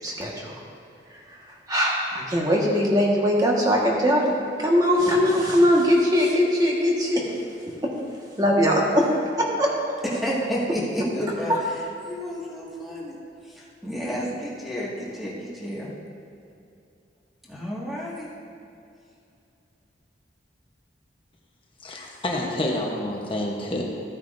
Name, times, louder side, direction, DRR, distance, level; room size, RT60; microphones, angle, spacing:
voice 1, 0.0-0.6 1.1-7.3 7.7-7.9 8.4-9.1 9.4-9.7 11.5-11.6, equal, 20° right, -3 dB, 1.5 m, -21 dB
voice 2, 10.1-11.7 12.0-15.9 17.4-18.3, equal, ahead, -7 dB, 1.9 m, -31 dB
voice 3, 21.8-23.8, left 1 dB, 30° left, -1 dB, 1.0 m, -28 dB
14.5 x 9.2 x 2.6 m, 2.6 s
head